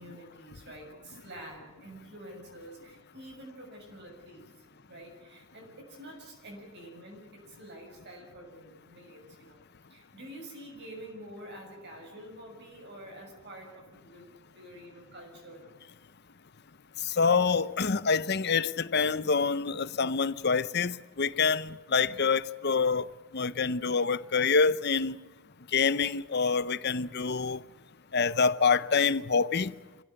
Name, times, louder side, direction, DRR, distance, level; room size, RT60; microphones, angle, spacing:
voice 1, 0.0-9.6 9.9-14.3 14.5-15.8 21.9-22.3, right 1 dB, 50° right, 6.6 m, -48 dB
voice 2, 17.2-23.1 23.3-25.1 25.7-27.6 28.1-29.7, left 5 dB, 50° left, 0.7 m, -26 dB
27.5 x 16.0 x 9.1 m
head